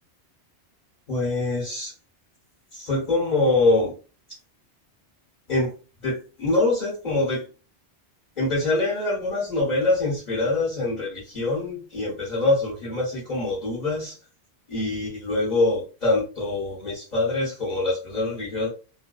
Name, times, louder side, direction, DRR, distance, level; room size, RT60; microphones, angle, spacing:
voice 1, 1.1-1.9 2.7-3.9 5.5-5.7 6.0-7.5 8.4-14.2 14.7-18.7, left 2 dB, 45° left, -6 dB, 1.1 m, -24 dB
2.6 x 2.1 x 2.3 m, 0.34 s
omnidirectional pair, 1.1 m